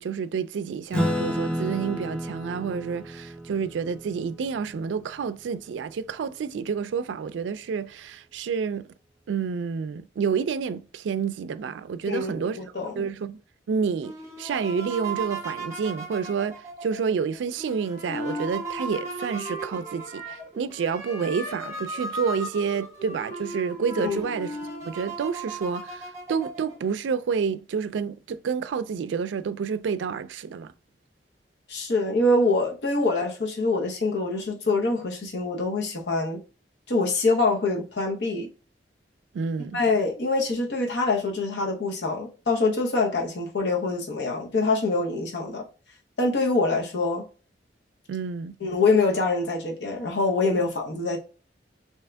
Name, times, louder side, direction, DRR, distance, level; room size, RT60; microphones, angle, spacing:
voice 1, 0.0-8.9 9.3-12.6 13.0-13.4 13.7-14.1 14.4-24.6 24.8-30.7 39.3-39.8 48.1-48.6, right 6 dB, 85° right, 0.3 m, -29 dB
Acoustic guitar / Strum, 0.9-5.8, equal, 5° left, 0.5 m, -31 dB
voice 2, 12.1-13.1 24.0-24.2 31.7-36.4 36.9-38.5 39.7-45.7 46.2-47.3 48.6-51.2, left 3 dB, 75° left, 0.8 m, -25 dB
sound 1, 14.0-23.3 23.8-23.9 24.1-26.9, right 3 dB, 15° right, 1.0 m, -38 dB
Wind instrument woodwind instrument, 18.1-20.5 20.8-24.9, equal, 30° left, 1.2 m, -38 dB
3.5 x 2.8 x 3.3 m
head